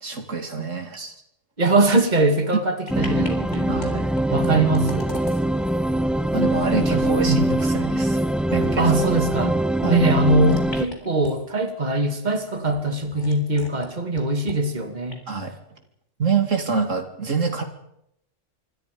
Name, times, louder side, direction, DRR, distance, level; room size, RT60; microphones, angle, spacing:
voice 1, 0.0-1.1 3.0-3.1 3.7-4.3 6.3-8.2 8.5-9.1 9.8-10.0 15.3-15.5 16.2-17.6, right 5 dB, 85° right, 5 dB, 3.0 m, -26 dB
voice 2, 1.6-3.8 4.3-5.1 6.7-7.6 8.8-9.6 9.9-15.2, right 2 dB, 35° right, 6 dB, 2.5 m, -22 dB
sound 1, 2.4-2.6 2.9-3.9 4.1-9.1 9.4-9.5 10.4-11.7 12.2-13.9 14.1-14.6 15.1-15.2, left 2 dB, 65° left, 4.2 m, -41 dB
sound 2, 2.9-10.9, right 1 dB, ahead, 0.9 m, -22 dB
26.0 x 24.0 x 5.3 m, 0.77 s
omnidirectional pair, 1.3 m